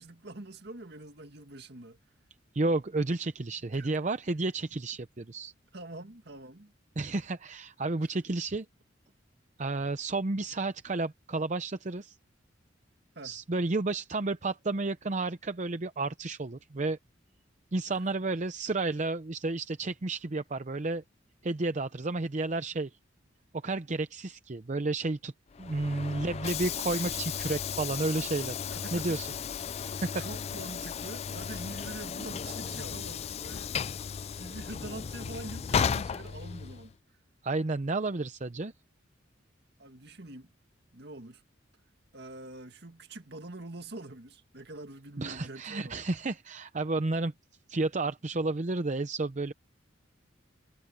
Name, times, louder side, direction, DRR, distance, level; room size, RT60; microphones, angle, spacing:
voice 1, 0.0-2.0 3.7-3.9 5.7-6.7 13.2-13.3 17.9-18.0 28.7-29.1 30.1-34.0 34.4-36.9 39.8-40.5 40.9-41.4 42.1-46.0, right 2 dB, 55° right, 2.1 m, -45 dB
voice 2, 2.5-5.5 7.0-8.7 9.6-12.2 13.2-17.0 17.7-21.0 21.4-22.9 23.6-25.3 25.6-28.5 28.9-29.3 30.0-30.2 37.4-38.7 45.2-47.3 47.7-49.5, right 2 dB, 40° right, 0.7 m, -31 dB
Train / Sliding door, 25.5-36.9, left 7 dB, 35° left, 0.3 m, -35 dB
head